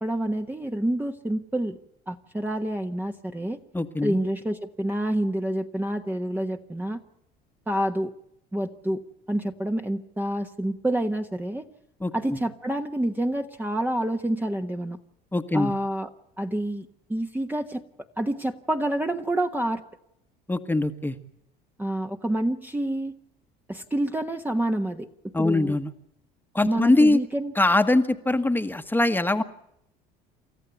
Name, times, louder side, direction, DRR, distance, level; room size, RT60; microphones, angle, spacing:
voice 1, 0.0-1.8 2.1-3.6 4.0-7.0 7.7-8.1 8.5-9.0 9.3-11.7 12.1-15.0 15.5-16.1 16.4-17.8 18.2-19.8 21.8-23.2 23.7-25.1 25.4-25.8 26.6-27.5, right 1 dB, 10° right, 4 dB, 1.2 m, -28 dB
voice 2, 3.7-4.1 12.0-12.4 15.3-15.7 20.5-21.2 25.3-25.9 26.5-27.2 27.5-29.4, left 2 dB, 10° left, 8 dB, 1.4 m, -22 dB
28.5 x 13.5 x 8.3 m, 0.77 s
supercardioid pair, 90°, 19 cm